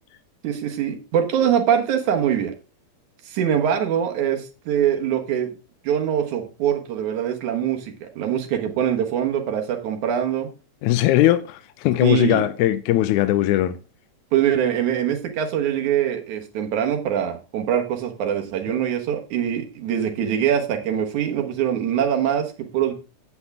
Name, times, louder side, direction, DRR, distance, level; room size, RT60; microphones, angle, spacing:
voice 1, 0.4-2.5 3.3-5.5 5.8-10.5 12.0-12.4 14.3-22.9, right 9 dB, 80° right, 2.8 m, -23 dB
voice 2, 10.8-13.8, left 14 dB, 90° left, 2.1 m, -19 dB
9.7 x 8.3 x 3.6 m
omnidirectional pair, 3.4 m